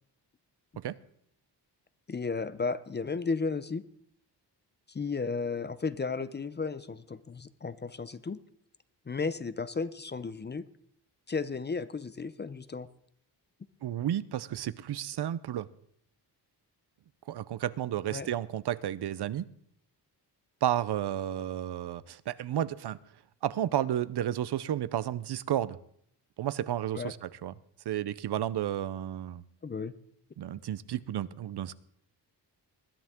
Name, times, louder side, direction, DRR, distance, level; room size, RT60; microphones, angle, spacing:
voice 1, 2.1-3.8 4.9-8.4 9.1-10.6 11.3-12.9 18.1-18.3 26.9-27.1 29.6-29.9, left 4 dB, 25° left, 0.5 m, -34 dB
voice 2, 13.8-15.7 17.3-19.5 20.6-23.0 23.4-25.8 26.4-27.5 27.9-29.4 30.4-31.7, right 11 dB, 65° right, 0.7 m, -32 dB
20.5 x 13.0 x 3.7 m
wide cardioid pair, 150°, 42 cm